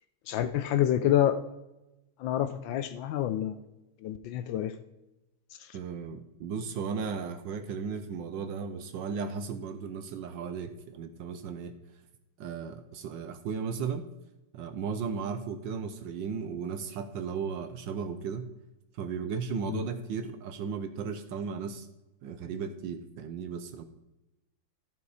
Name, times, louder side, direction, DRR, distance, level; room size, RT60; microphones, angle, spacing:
voice 1, 0.3-1.4 2.2-3.6 4.0-4.8 5.6-5.8 19.7-19.8, left 11 dB, 75° left, 12 dB, 1.2 m, -28 dB
voice 2, 5.7-11.7 12.4-14.1 14.5-18.5 18.9-21.9 22.2-23.8, right 6 dB, 70° right, 9 dB, 1.2 m, -35 dB
14.0 x 5.4 x 4.8 m, 0.97 s
omnidirectional pair, 2.4 m